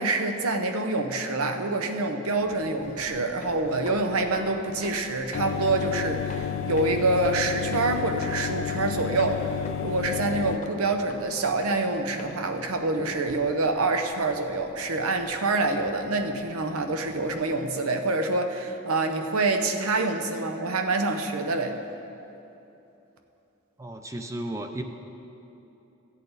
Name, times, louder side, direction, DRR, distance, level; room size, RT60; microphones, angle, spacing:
voice 1, 0.0-9.6 9.8-21.8, right 2 dB, 85° right, 6 dB, 0.8 m, -26 dB
sound 1, 2.3-17.6, left 1 dB, 35° left, 0.8 m, -46 dB
sound 2, 5.3-10.6, left 8 dB, 65° left, 0.3 m, -31 dB
voice 2, 23.8-24.8, right 1 dB, 15° right, 5 dB, 0.4 m, -34 dB
15.0 x 8.3 x 4.0 m, 2.9 s
head